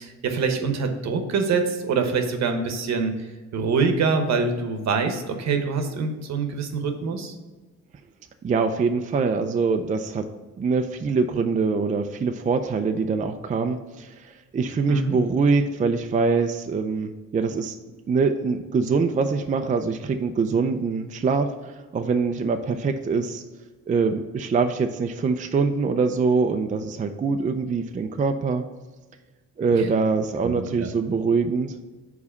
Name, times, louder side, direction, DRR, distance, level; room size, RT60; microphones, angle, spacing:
voice 1, 0.0-7.4 14.9-15.2 29.7-29.9 30.4-30.9, right 4 dB, 60° right, 6 dB, 1.0 m, -25 dB
voice 2, 8.4-10.3 10.6-17.8 18.1-23.4 23.9-28.6 29.6-31.9, right 4 dB, 25° right, 6 dB, 0.4 m, -24 dB
4.8 x 4.1 x 5.6 m, 1.3 s
cardioid pair, 90°, 30 cm